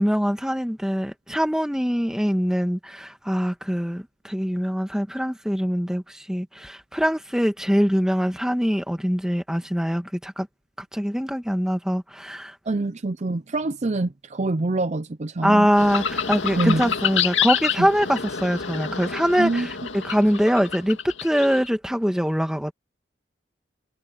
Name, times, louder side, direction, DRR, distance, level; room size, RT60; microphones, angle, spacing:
voice 1, 0.0-10.5 10.9-12.5 15.4-19.7 20.0-22.7, equal, 5° right, 1.7 m, -23 dB
voice 2, 12.7-15.7 16.6-16.8 17.8-17.9 19.4-19.7, right 2 dB, 35° right, 0.5 m, -25 dB
sound 1, 15.8-21.7, left 7 dB, 75° left, 2.2 m, -27 dB
head